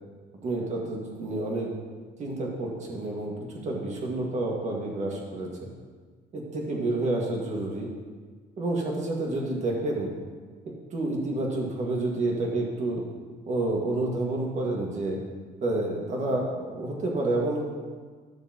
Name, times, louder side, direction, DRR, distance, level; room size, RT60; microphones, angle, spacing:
voice 1, 0.4-1.7 2.2-5.7 6.3-7.9 8.6-10.1 10.9-13.1 13.5-15.2 15.6-17.7, right 2 dB, 45° right, -1 dB, 1.9 m, -29 dB
12.0 x 6.6 x 3.0 m, 1.5 s
cardioid pair, 110°, 17 cm